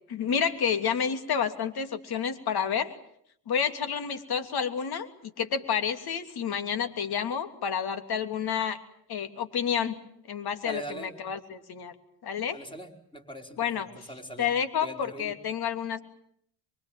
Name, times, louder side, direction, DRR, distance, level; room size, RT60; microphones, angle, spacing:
voice 1, 0.1-2.9 3.5-8.8 9.1-9.9 10.3-11.9 12.2-12.6 13.6-13.9 14.4-16.0, left 7 dB, 50° left, 9 dB, 3.1 m, -29 dB
voice 2, 10.6-11.2 12.5-13.7 14.1-14.5 14.8-15.3, right 1 dB, 10° left, 3 dB, 5.2 m, -41 dB
24.5 x 24.0 x 9.1 m, 0.69 s
hypercardioid pair, 70°, 48 cm